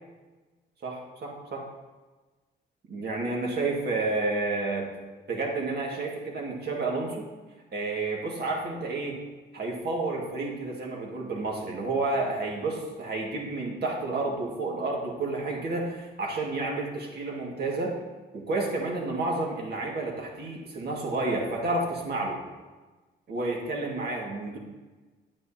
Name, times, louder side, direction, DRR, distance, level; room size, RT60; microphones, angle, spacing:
voice 1, 0.8-1.7 2.9-4.9 5.3-7.3 7.7-9.2 9.5-18.0 18.3-22.4 23.3-24.6, right 2 dB, 55° right, -1 dB, 2.0 m, -30 dB
9.2 x 9.1 x 2.8 m, 1.3 s
cardioid pair, 90°, 20 cm